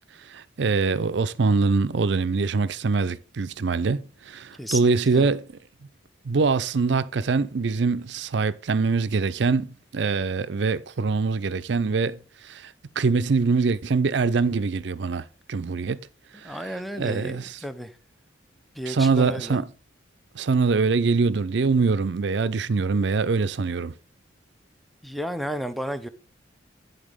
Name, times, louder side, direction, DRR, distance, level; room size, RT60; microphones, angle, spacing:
voice 1, 0.3-5.5 6.3-12.2 12.5-12.6 13.0-15.2 15.5-16.0 16.4-17.6 18.9-19.7 20.4-23.9, right 4 dB, 65° right, 0.5 m, -23 dB
voice 2, 4.6-5.3 16.4-17.9 18.8-19.6 25.0-26.1, equal, ahead, 0.5 m, -33 dB
10.5 x 3.9 x 5.0 m
head